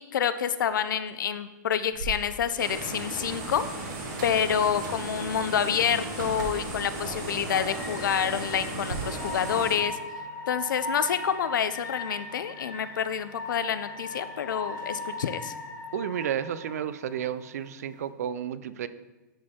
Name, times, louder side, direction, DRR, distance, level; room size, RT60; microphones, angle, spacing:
voice 1, 0.0-3.6 4.2-10.0 10.5-15.5, left 8 dB, 85° left, 13 dB, 0.5 m, -28 dB
sound 1, 1.9-9.0, right 3 dB, 80° right, 1.2 m, -42 dB
sound 2, 2.2-18.1, left 2 dB, 65° left, 1.6 m, -41 dB
sound 3, 2.6-9.7, right 2 dB, 35° right, 2.6 m, -36 dB
voice 2, 15.9-18.9, right 9 dB, 50° right, 14 dB, 0.4 m, -32 dB
11.0 x 4.3 x 3.7 m, 1.1 s
hypercardioid pair, 175°, 10 cm